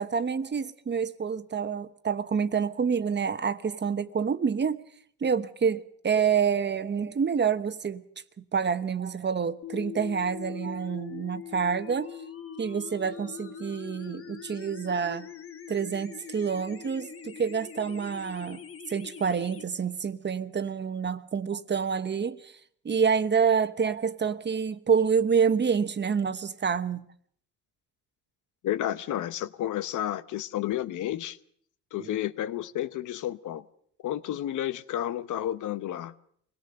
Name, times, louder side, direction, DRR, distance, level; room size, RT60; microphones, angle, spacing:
voice 1, 0.0-4.8 5.2-8.0 8.5-12.1 12.6-15.3 15.7-18.6 18.9-22.5 22.8-27.0 32.0-32.2, right 6 dB, 35° right, 1.1 m, -27 dB
sound 1, 9.6-19.6, left 8 dB, 50° left, 1.8 m, -42 dB
voice 2, 28.6-31.4 31.9-33.6 34.0-36.1, left 12 dB, 80° left, 1.0 m, -31 dB
24.5 x 17.5 x 6.7 m
cardioid pair, 90°, 30 cm